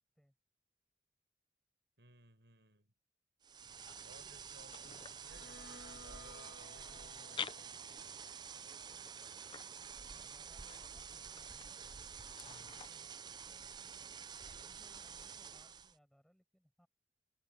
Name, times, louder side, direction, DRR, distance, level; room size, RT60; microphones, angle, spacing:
voice 1, 2.0-2.9 4.0-7.6 12.4-13.0, right 2 dB, 75° right, 6.3 m, -63 dB
sound 1, 3.4-16.0, right 6 dB, 25° right, 0.5 m, -49 dB
sound 2, 3.6-12.9, left 6 dB, 30° left, 0.6 m, -52 dB
sound 3, 5.2-10.3, left 2 dB, 60° left, 2.1 m, -59 dB
voice 2, 10.0-11.9 12.4-14.2 14.5-16.9, equal, ahead, 7.4 m, -71 dB
open air
head